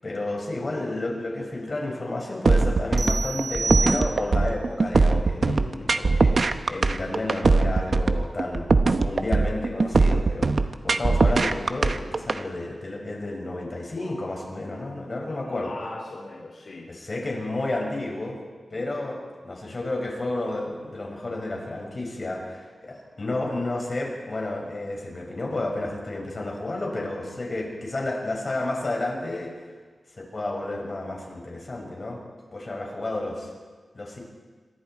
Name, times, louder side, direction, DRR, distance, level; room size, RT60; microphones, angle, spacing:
voice 1, 0.0-8.7 9.0-10.5 10.8-15.7 16.9-18.4 18.7-19.2 19.4-29.5 30.2-32.2 32.5-33.5 33.9-34.2, left 2 dB, 40° left, -1 dB, 6.6 m, -31 dB
sound 1, 2.5-12.4, right 3 dB, 50° right, 1.0 m, -21 dB
sound 2, 3.0-4.5, right 3 dB, 75° right, 3.6 m, -29 dB
voice 2, 5.4-5.9 15.3-16.9, left 2 dB, 60° left, -5 dB, 4.6 m, -38 dB
27.0 x 24.0 x 4.7 m, 1.5 s
wide cardioid pair, 110°, 0 cm